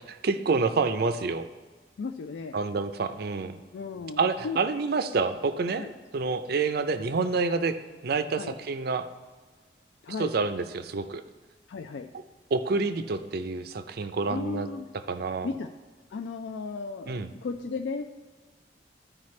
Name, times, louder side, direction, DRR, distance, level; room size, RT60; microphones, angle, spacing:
voice 1, 0.1-1.5 2.5-3.6 4.2-5.8 6.1-7.8 8.0-9.1 10.2-11.2 12.5-14.7 15.1-15.5 17.1-17.3, right 4 dB, 60° right, 10 dB, 0.5 m, -28 dB
voice 2, 2.0-2.6 3.7-4.6 5.8-5.9 8.4-8.5 10.0-10.3 11.7-12.1 14.3-14.9 15.4-15.7 16.1-18.1, left 4 dB, 75° left, 5 dB, 0.4 m, -35 dB
13.5 x 4.9 x 3.2 m, 1.4 s
head